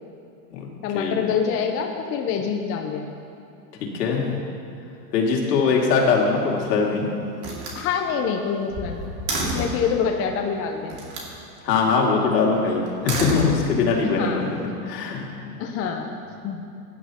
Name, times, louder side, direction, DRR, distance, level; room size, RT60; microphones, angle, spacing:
voice 1, 0.8-3.1 7.7-9.1 9.4-11.0 14.0-14.5 15.6-16.6, left 6 dB, 25° left, 3 dB, 0.7 m, -26 dB
voice 2, 3.8-4.4 5.1-7.1 9.5-9.7 11.6-15.5, left 4 dB, 75° left, -1 dB, 2.5 m, -22 dB
Slam, 6.3-6.9 7.4-9.9 10.9-11.4 12.9-14.0, right 2 dB, 35° right, 2.5 m, -30 dB
16.5 x 10.5 x 2.9 m, 2.7 s
hypercardioid pair, 130°, 50 cm